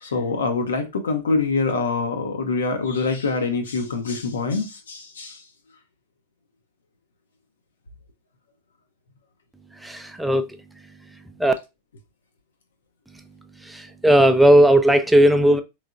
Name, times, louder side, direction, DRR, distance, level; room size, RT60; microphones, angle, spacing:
voice 1, 0.0-5.4, left 4 dB, 65° left, 0.6 m, -25 dB
voice 2, 9.8-10.5 11.4-11.5 13.7-15.6, right 1 dB, 5° right, 0.4 m, -16 dB
3.6 x 3.1 x 2.4 m
figure-of-eight pair, 90°, 0 cm